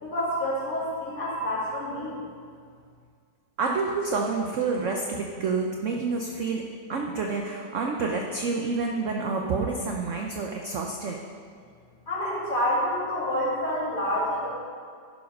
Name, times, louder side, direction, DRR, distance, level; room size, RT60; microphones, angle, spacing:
voice 1, 0.0-2.2 12.1-14.5, equal, 45° left, -7 dB, 2.8 m, -28 dB
voice 2, 3.6-6.6 6.9-11.2, right 4 dB, 65° right, 1 dB, 0.8 m, -28 dB
11.5 x 5.1 x 5.2 m, 2.1 s
omnidirectional pair, 2.0 m